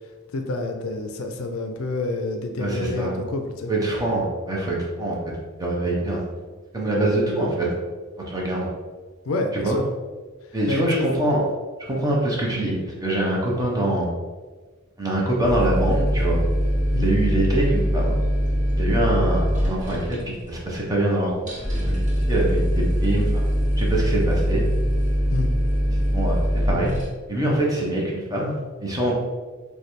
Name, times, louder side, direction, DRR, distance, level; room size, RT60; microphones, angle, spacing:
voice 1, 0.3-3.7 9.3-9.9 10.7-11.1 16.9-17.1 25.3-25.5, left 2 dB, 75° left, 5 dB, 0.4 m, -28 dB
voice 2, 2.6-3.1 3.7-5.1 5.6-6.2 6.7-7.8 8.3-8.7 9.5-9.8 10.5-11.4 11.9-14.1 15.0-16.4 17.0-18.2 18.7-21.3 21.6-22.0 22.3-23.4 23.8-24.7 26.1-27.0 27.3-28.5 28.8-29.1, right 1 dB, 20° right, -3 dB, 0.8 m, -24 dB
sound 1, 15.4-27.0, equal, 40° right, 1.1 m, -22 dB
3.2 x 2.3 x 4.1 m, 1.4 s
head